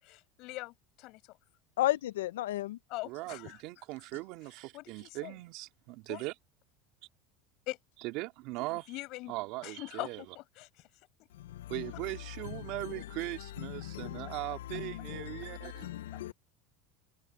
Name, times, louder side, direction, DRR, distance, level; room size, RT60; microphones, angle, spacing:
voice 1, 0.0-1.4 2.9-3.6 4.7-5.3 6.1-6.2 7.7-7.8 8.7-9.3 9.6-10.7 16.1-16.2, left 21 dB, 60° left, 6.0 m, -42 dB
voice 2, 1.8-2.8 14.0-14.2 15.1-15.4 15.8-15.9 16.2-16.3, left 15 dB, 90° left, 0.5 m, -32 dB
voice 3, 3.0-6.4 8.0-8.9 9.3-10.2 11.7-15.9, right 21 dB, 60° right, 3.4 m, -39 dB
supercardioid pair, 110°, 0 cm